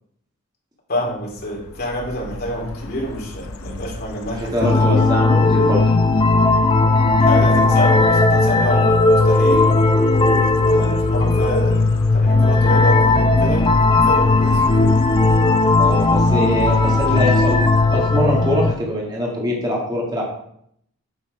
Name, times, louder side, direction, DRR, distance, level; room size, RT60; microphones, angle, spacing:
voice 1, 0.9-5.0 7.2-9.7 10.7-11.9 12.1-14.6, equal, 50° left, -3 dB, 2.7 m, -27 dB
sound 1, 1.3-18.9, left 2 dB, 80° left, 0.7 m, -31 dB
voice 2, 4.4-5.8 15.8-17.6 17.9-20.2, equal, 20° right, -3 dB, 1.7 m, -23 dB
sound 2, 4.6-18.7, left 3 dB, 25° left, 0.6 m, -16 dB
7.9 x 5.5 x 4.8 m, 0.70 s
head